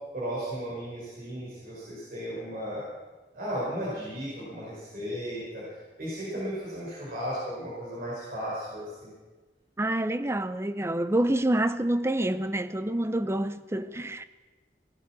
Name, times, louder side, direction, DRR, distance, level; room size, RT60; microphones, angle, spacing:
voice 1, 0.1-2.9 3.3-5.6 6.0-9.1, equal, 55° right, 5.4 m, -35 dB
voice 2, 9.8-14.2, right 1 dB, 15° right, 0.6 m, -27 dB
18.5 x 12.0 x 6.0 m
head